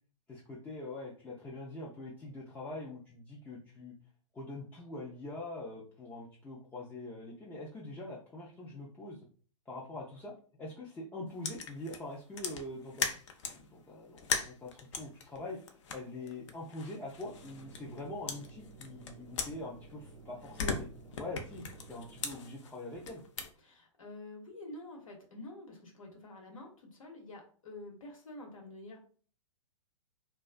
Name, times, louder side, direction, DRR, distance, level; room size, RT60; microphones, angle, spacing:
voice 1, 0.3-3.9 4.3-9.2 9.7-10.3 10.6-13.1 13.5-15.6 15.9-20.9 21.2-23.2, left 2 dB, 10° left, -6 dB, 0.4 m, -44 dB
sound 1, 11.4-13.6 14.2-18.0 18.3-20.1 20.4-23.5, left 5 dB, 60° left, 0.5 m, -39 dB
sound 2, 17.1-22.2, right 4 dB, 90° right, 0.7 m, -54 dB
voice 2, 23.6-29.0, left 2 dB, 80° left, 1 dB, 0.9 m, -48 dB
2.3 x 2.2 x 2.4 m, 0.43 s
hypercardioid pair, 115°, 17 cm